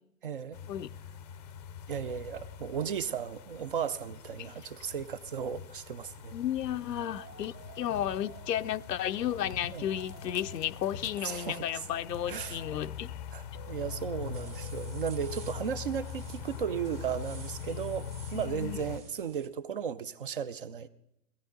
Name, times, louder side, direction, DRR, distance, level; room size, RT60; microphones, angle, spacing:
voice 1, 0.2-0.6 1.9-6.3 9.7-9.9 11.2-11.6 12.3-12.6 13.3-20.9, right 8 dB, 35° right, 0.5 m, -35 dB
sound 1, 0.5-19.0, left 8 dB, 25° left, 0.6 m, -43 dB
voice 2, 6.3-13.1 18.3-18.8, left 11 dB, 75° left, 0.7 m, -33 dB
sound 2, 7.0-8.6 9.2-10.7 11.4-12.9 13.5-15.1, right 9 dB, 75° right, 0.9 m, -52 dB
sound 3, 14.2-19.5, right 5 dB, 15° right, 0.9 m, -52 dB
17.5 x 14.5 x 3.8 m
hypercardioid pair, 130°, 49 cm